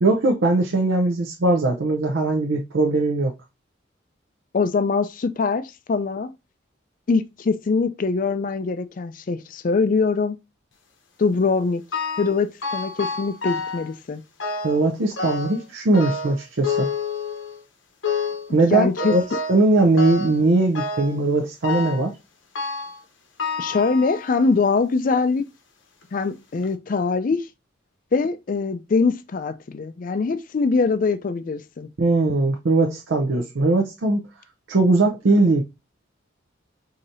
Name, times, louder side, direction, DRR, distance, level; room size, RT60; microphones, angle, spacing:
voice 1, 0.0-3.3 14.6-16.9 18.5-19.2 19.5-22.1 32.0-34.3 34.7-35.6, right 2 dB, 70° right, 0.6 m, -20 dB
voice 2, 4.5-6.3 7.1-10.4 11.2-11.8 12.2-14.2 18.7-19.1 23.6-25.5 26.1-27.5 28.1-31.9, left 4 dB, 45° left, 0.4 m, -23 dB
sound 1, 11.9-12.4 12.6-13.9 14.4-14.8 15.2-15.6 15.9-17.6 18.0-18.5 19.0-19.7 20.0-20.4 20.8-21.2 21.6-22.1 22.6-23.0 23.4-24.5 25.1-25.2 26.0-26.1 26.6-26.7, left 4 dB, 75° left, 0.8 m, -29 dB
4.8 x 2.8 x 2.6 m
head